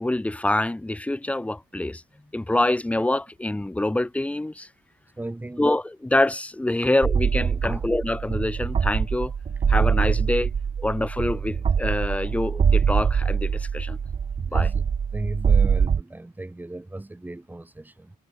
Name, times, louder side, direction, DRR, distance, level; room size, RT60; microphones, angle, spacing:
voice 1, 0.0-2.0 2.3-4.7 5.6-9.3 9.7-10.5 10.8-14.0 14.5-14.7, left 1 dB, 10° left, 2.7 m, -25 dB
voice 2, 5.2-5.7 7.6-7.9 10.8-10.9 14.5-14.9 15.1-18.1, right 2 dB, 10° right, 6.9 m, -35 dB
sound 1, 7.0-16.0, right 6 dB, 35° right, 3.8 m, -23 dB
cardioid pair, 110°, 17 cm